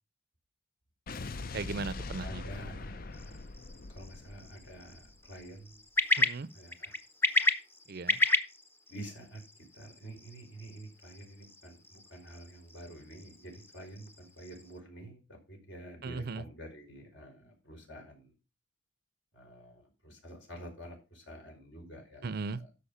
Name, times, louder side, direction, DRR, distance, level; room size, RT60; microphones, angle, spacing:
Explosion, 1.1-5.4, left 3 dB, 45° left, 0.5 m, -42 dB
voice 1, 1.5-2.4 6.2-6.5 7.9-8.2 16.0-16.4 22.2-22.6, right 4 dB, 50° right, 0.5 m, -37 dB
voice 2, 2.2-3.5 3.9-5.8 6.5-7.0 8.9-9.4 9.7-18.4 19.3-22.7, right 1 dB, 65° left, 5.2 m, -48 dB
sound 1, 3.1-14.8, left 1 dB, 10° left, 0.8 m, -34 dB
13.0 x 5.3 x 5.6 m
head